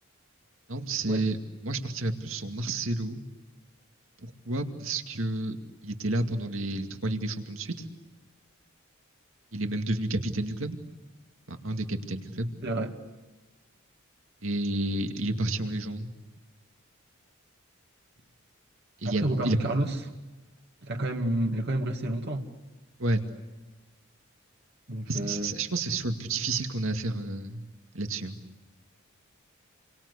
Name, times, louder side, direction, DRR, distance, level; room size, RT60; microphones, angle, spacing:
voice 1, 0.7-1.4 1.6-3.2 4.2-5.6 5.8-7.9 9.5-10.8 11.5-12.5 14.4-16.1 19.0-19.6 23.0-23.2 25.1-27.7 27.9-28.4, right 2 dB, 70° right, 6 dB, 2.3 m, -30 dB
voice 2, 12.6-12.9 19.0-20.0 20.8-22.5 24.9-25.5, right 1 dB, 55° right, 3 dB, 2.2 m, -29 dB
29.5 x 24.0 x 8.3 m, 1.2 s
head